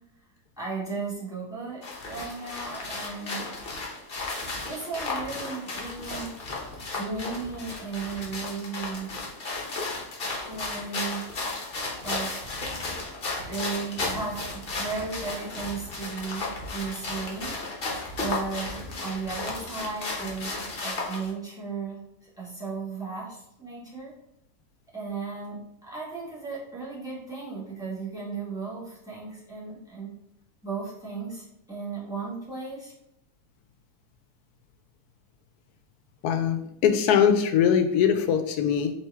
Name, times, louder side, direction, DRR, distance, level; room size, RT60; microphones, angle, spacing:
voice 1, 0.6-3.4 4.7-6.3 7.0-9.1 10.5-11.2 12.0-12.3 13.4-17.6 18.2-24.1 24.9-30.1 30.6-32.9, right 4 dB, 5° right, -7 dB, 1.3 m, -35 dB
sound 1, 1.8-21.3, left 3 dB, 45° left, 1.0 m, -34 dB
voice 2, 36.2-38.9, left 8 dB, 80° left, 7 dB, 1.1 m, -22 dB
4.5 x 3.0 x 3.4 m, 0.79 s
omnidirectional pair, 1.6 m